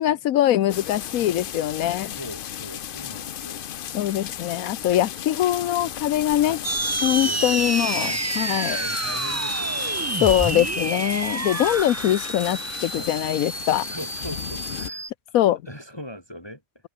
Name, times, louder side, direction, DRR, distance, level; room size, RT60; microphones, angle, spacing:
voice 1, 0.0-2.1 3.9-6.6 7.0-8.8 10.2-13.9 15.3-15.6, left 12 dB, 75° left, 1.2 m, -22 dB
sound 1, 0.7-14.9, left 10 dB, 55° left, 0.6 m, -35 dB
voice 2, 2.0-3.6 6.4-6.6 7.2-8.2 8.7-10.2 11.6-11.7 13.0-13.1 13.8-16.6, equal, 15° left, 5.0 m, -40 dB
sound 2, 6.6-15.1, right 2 dB, 15° right, 0.6 m, -28 dB
omnidirectional pair, 1.5 m